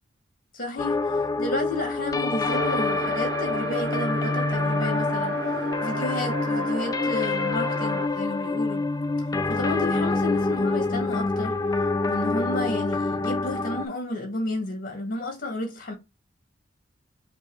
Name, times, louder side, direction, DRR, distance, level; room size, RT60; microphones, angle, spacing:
voice 1, 0.5-8.8 9.5-11.6 12.1-15.9, left 2 dB, 45° left, 2.0 m, -32 dB
sound 1, 0.8-13.9, left 3 dB, 20° left, 0.3 m, -26 dB
sound 2, 2.4-8.1, right 3 dB, 55° right, 0.6 m, -34 dB
5.2 x 2.7 x 3.3 m
head